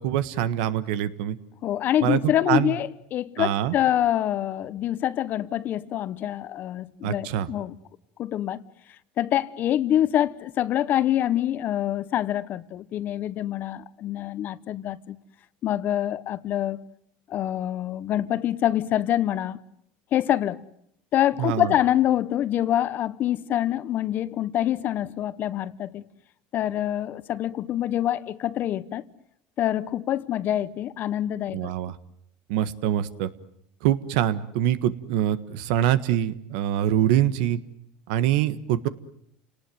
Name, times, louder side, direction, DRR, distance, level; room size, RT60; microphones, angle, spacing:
voice 1, 0.0-1.4 2.0-2.7 3.4-3.7 7.0-7.5 21.4-21.7 31.5-31.9 32.5-33.3 33.8-37.6 38.1-38.9, right 11 dB, 80° right, 1.5 m, -24 dB
voice 2, 1.6-7.7 8.2-8.6 9.2-15.2 15.6-16.8 17.3-19.6 20.1-20.6 21.1-26.0 26.5-29.0 29.6-31.7, left 12 dB, 45° left, 1.1 m, -25 dB
29.5 x 19.0 x 9.4 m
supercardioid pair, 120°, 4 cm